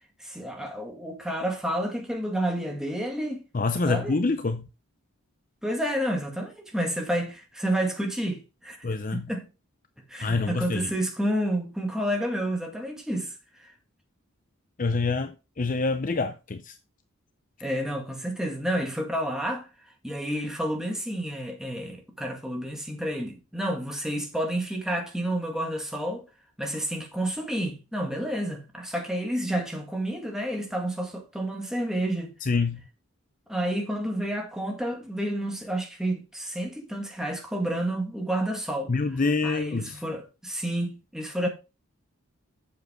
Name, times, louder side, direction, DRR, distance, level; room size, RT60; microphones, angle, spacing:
voice 1, 0.2-3.4 3.9-4.2 5.6-9.5 10.1-13.7 17.6-19.7 20.0-26.3 26.6-32.3 33.5-41.5, right 1 dB, ahead, 1.9 m, -30 dB
voice 2, 3.5-4.7 8.8-9.3 10.2-10.8 14.8-16.7 32.5-32.8 38.9-40.0, left 3 dB, 35° left, 0.6 m, -26 dB
7.9 x 7.2 x 3.8 m
head